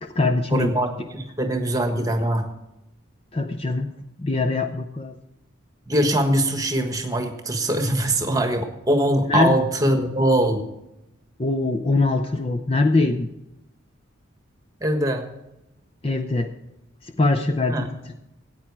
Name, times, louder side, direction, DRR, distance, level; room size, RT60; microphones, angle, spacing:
voice 1, 0.0-0.7 3.3-3.9 4.2-5.2 9.3-9.6 9.8-10.0 11.4-13.3 16.0-16.5 17.0-18.1, left 2 dB, 30° left, 8 dB, 0.5 m, -22 dB
voice 2, 0.5-2.5 5.9-10.6 14.8-15.3 17.7-17.9, right 1 dB, 15° right, 6 dB, 1.3 m, -22 dB
14.5 x 8.9 x 4.8 m, 0.92 s
head